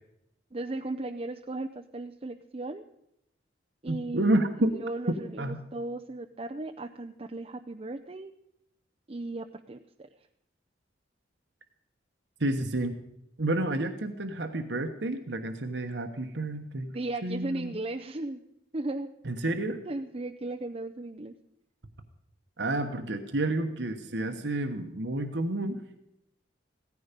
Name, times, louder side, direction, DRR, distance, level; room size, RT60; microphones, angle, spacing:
voice 1, 0.5-2.8 3.8-4.5 4.7-8.3 9.1-9.8 16.9-18.4 18.7-19.1 19.8-21.3, right 2 dB, 30° right, 4 dB, 0.6 m, -36 dB
voice 2, 3.9-4.7 5.4-5.6 12.4-12.9 13.4-17.0 17.2-17.7 19.2-19.8 22.6-25.8, right 1 dB, 70° right, 6 dB, 1.3 m, -30 dB
17.0 x 14.5 x 5.3 m, 0.80 s
head